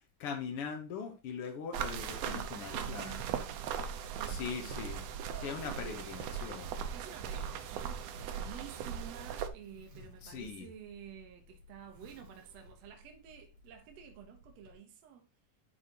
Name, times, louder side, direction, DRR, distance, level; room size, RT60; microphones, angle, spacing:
voice 1, 0.2-3.1 4.3-5.0 5.4-6.7 10.2-10.7, left 6 dB, 75° left, 1.3 m, -41 dB
sound 1, 1.7-9.5, right 8 dB, 85° right, 1.4 m, -39 dB
voice 2, 2.2-3.5 4.1-4.8 5.5-6.3 6.9-15.3, right 8 dB, 65° right, 1.7 m, -51 dB
Zipper (clothing), 4.8-14.7, equal, 50° right, 3.0 m, -58 dB
11.5 x 4.3 x 2.9 m
omnidirectional pair, 3.8 m